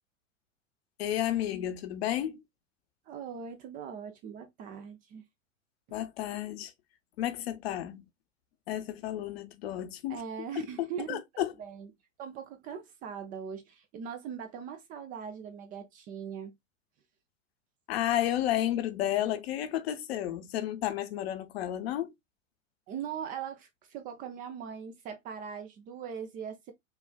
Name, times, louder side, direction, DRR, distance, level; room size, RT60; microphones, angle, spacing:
voice 1, 1.0-2.4 5.9-6.7 7.2-8.1 8.7-10.2 10.5-10.7 11.1-11.5 17.9-22.1, left 12 dB, 50° left, 0.8 m, -32 dB
voice 2, 3.1-5.2 10.1-11.9 12.2-16.5 19.2-19.3 22.9-26.7, right 7 dB, 20° right, 0.4 m, -40 dB
5.4 x 2.3 x 2.2 m
figure-of-eight pair, 95°, 39 cm